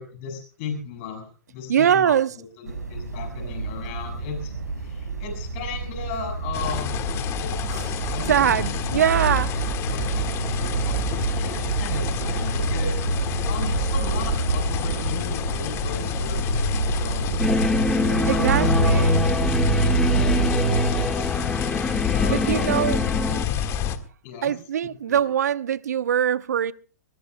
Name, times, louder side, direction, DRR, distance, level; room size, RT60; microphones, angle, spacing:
voice 1, 0.0-9.4 9.9-18.7 19.7-21.3 22.1-22.8 23.3-23.4 24.2-24.6 25.0-25.2, left 5 dB, 45° left, 6.5 m, -37 dB
voice 2, 1.7-2.3 8.3-9.5 18.3-19.3 22.3-23.0 24.4-26.7, right 9 dB, 75° right, 0.9 m, -22 dB
sound 1, 2.7-21.1, right 3 dB, 90° right, 5.6 m, -26 dB
sound 2, 6.5-24.0, left 9 dB, 30° left, 1.7 m, -29 dB
sound 3, 17.4-23.5, left 2 dB, 5° left, 1.6 m, -25 dB
23.5 x 21.5 x 2.3 m
hypercardioid pair, 120°, 9 cm